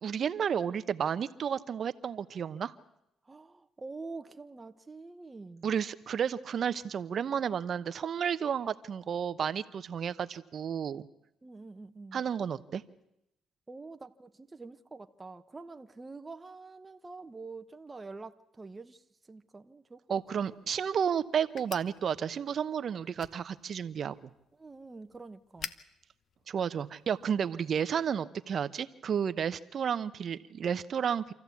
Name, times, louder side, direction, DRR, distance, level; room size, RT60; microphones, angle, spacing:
voice 1, 0.0-2.7 5.6-11.1 12.1-12.8 20.1-24.3 26.5-31.3, right 7 dB, 55° right, 13 dB, 0.9 m, -32 dB
voice 2, 3.2-5.7 11.4-12.2 13.7-20.1 24.6-25.7, right 3 dB, 20° right, 7 dB, 1.0 m, -46 dB
sound 1, 20.2-27.3, left 7 dB, 60° left, 1.0 m, -50 dB
26.5 x 14.5 x 8.4 m, 0.82 s
cardioid pair, 80°, 0 cm